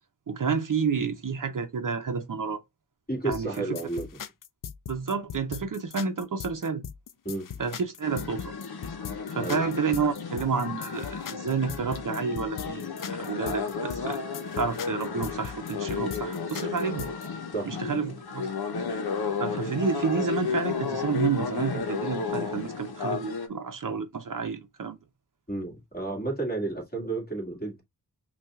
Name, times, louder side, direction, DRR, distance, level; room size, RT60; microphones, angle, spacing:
voice 1, 0.3-2.6 3.2-3.8 4.9-6.8 7.6-8.5 9.3-14.2 14.6-17.1 17.6-18.5 19.4-25.0, right 5 dB, 60° right, 0.7 m, -30 dB
voice 2, 3.1-4.1 7.2-7.4 9.4-9.7 17.5-17.7 25.5-27.8, right 2 dB, 25° left, 2.2 m, -31 dB
sound 1, 3.3-17.3, left 8 dB, 60° left, 0.5 m, -40 dB
sound 2, 8.0-23.5, left 5 dB, 90° left, 0.8 m, -33 dB
5.5 x 2.5 x 2.4 m
wide cardioid pair, 75°, 37 cm